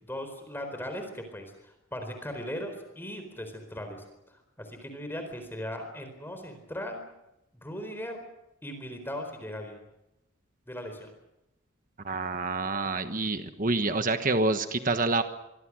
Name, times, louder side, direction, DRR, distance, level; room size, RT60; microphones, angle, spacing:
voice 1, 0.0-7.0 7.6-8.2 8.6-9.8 10.7-11.1, equal, 10° left, 5 dB, 4.3 m, -38 dB
voice 2, 12.0-15.2, right 3 dB, 40° right, 8 dB, 1.3 m, -27 dB
24.5 x 24.5 x 6.3 m, 0.90 s
head